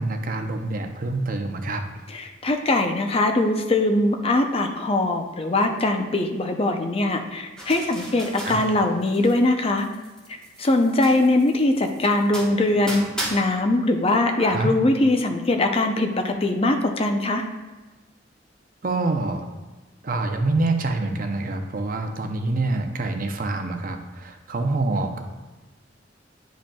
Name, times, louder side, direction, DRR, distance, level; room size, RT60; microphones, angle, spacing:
voice 1, 0.0-1.8 8.4-8.6 14.4-14.7 18.8-19.4 20.0-25.2, right 2 dB, 50° right, 5 dB, 0.6 m, -26 dB
voice 2, 2.1-9.9 10.6-17.4, left 2 dB, 30° left, 4 dB, 0.5 m, -21 dB
sound 1, 7.6-9.5 9.8-13.3, right 1 dB, 5° left, 1.2 m, -36 dB
10.0 x 5.1 x 2.3 m, 1.2 s
head